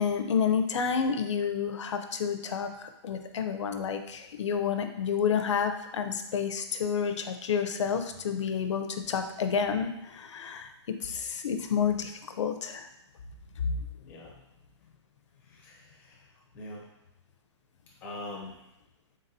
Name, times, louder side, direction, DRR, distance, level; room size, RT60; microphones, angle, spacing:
voice 1, 0.0-10.7 11.0-12.9 13.6-14.1, left 7 dB, 75° left, 7 dB, 0.5 m, -30 dB
voice 2, 15.4-16.9 18.0-18.6, left 1 dB, 10° left, -3 dB, 0.6 m, -43 dB
4.0 x 3.8 x 2.7 m, 0.90 s
hypercardioid pair, 175°, 15 cm